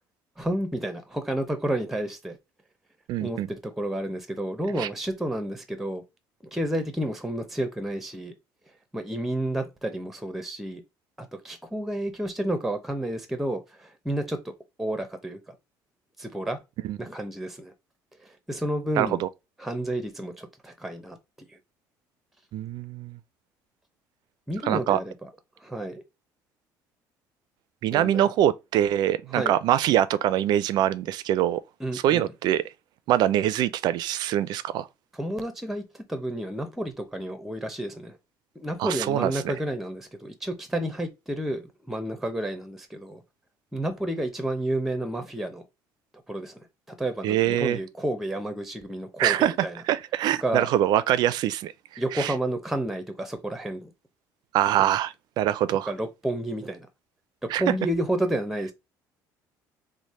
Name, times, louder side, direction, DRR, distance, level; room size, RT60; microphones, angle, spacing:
voice 1, 0.4-2.4 3.2-6.0 6.5-8.3 8.9-10.8 11.2-14.4 14.8-15.6 16.2-16.6 17.0-17.7 18.2-19.2 19.6-21.2 24.5-25.3 25.6-26.0 27.9-28.3 29.3-29.5 31.8-32.3 35.1-35.8 36.1-38.2 38.6-43.2 43.7-45.6 46.3-46.6 47.0-49.7 50.4-50.7 52.0-53.9 55.9-56.9 57.4-58.7, right 1 dB, 5° right, 0.7 m, -30 dB
voice 2, 3.1-3.5 4.8-4.9 16.8-17.0 19.0-19.3 22.5-23.2 24.6-25.0 27.8-31.6 31.9-32.6 33.1-34.9 38.8-39.5 47.2-47.8 49.2-49.5 49.8-52.3 54.5-55.9 57.5-57.6, right 12 dB, 65° right, 0.4 m, -24 dB
3.2 x 2.1 x 4.1 m
cardioid pair, 100°, 8 cm